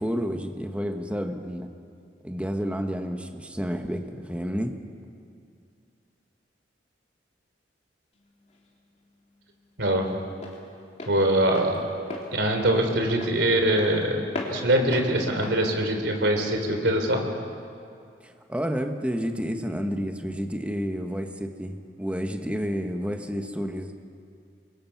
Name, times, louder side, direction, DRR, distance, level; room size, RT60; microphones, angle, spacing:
voice 1, 0.0-1.7 2.2-4.7 18.2-23.9, equal, 5° right, 4 dB, 1.3 m, -30 dB
Walk footsteps, 8.1-16.8, left 2 dB, 40° left, 3.4 m, -40 dB
voice 2, 9.8-10.1 11.1-11.8 12.3-14.2 14.5-17.2, right 1 dB, 80° right, 4 dB, 3.6 m, -23 dB
27.5 x 22.5 x 6.0 m, 2.4 s
head